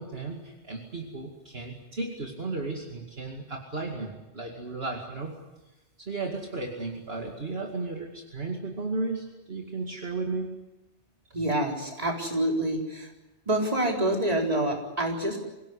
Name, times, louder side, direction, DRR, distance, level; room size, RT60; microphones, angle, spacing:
voice 1, 0.0-5.4 6.0-10.5 11.3-11.4, right 3 dB, 60° right, 1 dB, 2.6 m, -34 dB
voice 2, 11.3-13.1 13.5-15.4, right 1 dB, 35° right, 1 dB, 4.2 m, -27 dB
25.5 x 17.0 x 9.9 m, 1.0 s
omnidirectional pair, 1.1 m